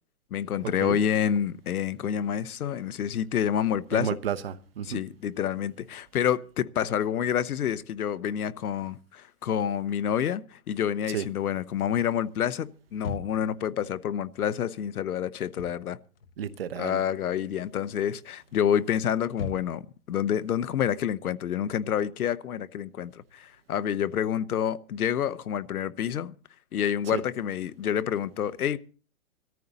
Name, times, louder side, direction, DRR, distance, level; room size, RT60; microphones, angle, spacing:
voice 1, 0.3-4.1 4.8-16.0 16.8-19.8 20.1-26.3 26.7-28.8, left 9 dB, 80° left, 1.0 m, -28 dB
voice 2, 3.9-5.0 11.1-11.3 16.4-17.0 27.1-27.2, right 9 dB, 40° right, 0.9 m, -31 dB
sound 1, 13.0-13.6 15.4-15.8 16.2-17.1 17.4-17.8 18.5-20.0, left 4 dB, 40° left, 0.8 m, -39 dB
19.5 x 14.0 x 4.0 m
hypercardioid pair, 175°, 44 cm